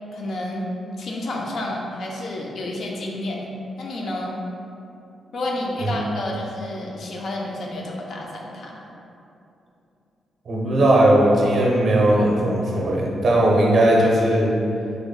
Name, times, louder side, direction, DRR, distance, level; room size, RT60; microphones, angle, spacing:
voice 1, 0.1-0.7 1.0-4.4 5.3-8.8, left 1 dB, 55° left, -1 dB, 0.4 m, -30 dB
voice 2, 10.5-14.5, right 1 dB, 50° right, -3 dB, 0.5 m, -18 dB
3.3 x 2.0 x 3.8 m, 2.7 s
wide cardioid pair, 160°, 0 cm